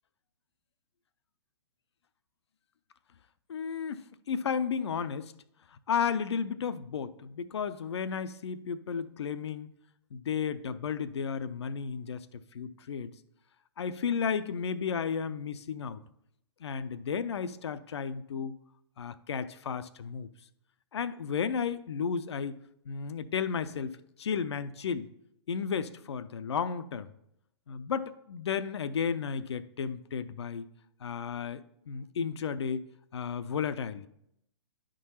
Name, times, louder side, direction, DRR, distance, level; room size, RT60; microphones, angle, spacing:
voice 1, 3.5-5.3 5.9-9.7 10.1-12.3 12.5-13.1 13.8-16.0 16.6-18.6 19.0-20.3 20.9-22.6 22.9-25.1 25.5-27.1 27.7-30.6 31.0-32.9 33.1-34.1, left 6 dB, 70° left, 15 dB, 0.5 m, -33 dB
10.5 x 3.8 x 4.2 m, 0.77 s
figure-of-eight pair, 120°, 15 cm